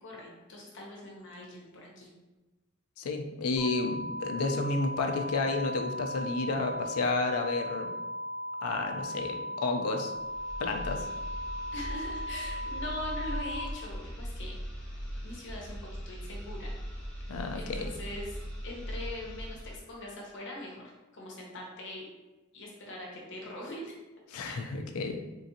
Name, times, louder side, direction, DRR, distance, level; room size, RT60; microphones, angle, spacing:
voice 1, 0.0-2.1 11.7-14.6 15.2-16.7 17.5-18.4 18.6-20.8 21.1-22.1 22.5-24.0 24.4-24.8, left 1 dB, 60° left, -3 dB, 0.9 m, -42 dB
voice 2, 3.0-7.9 8.6-10.1 10.6-11.1 17.3-17.9 24.3-25.2, left 3 dB, 85° left, 5 dB, 0.4 m, -31 dB
sound 1, 3.6-13.6, equal, 10° right, 1.3 m, -37 dB
sound 2, 10.1-19.8, equal, 5° left, 1.3 m, -40 dB
3.7 x 2.5 x 2.7 m, 1.1 s
head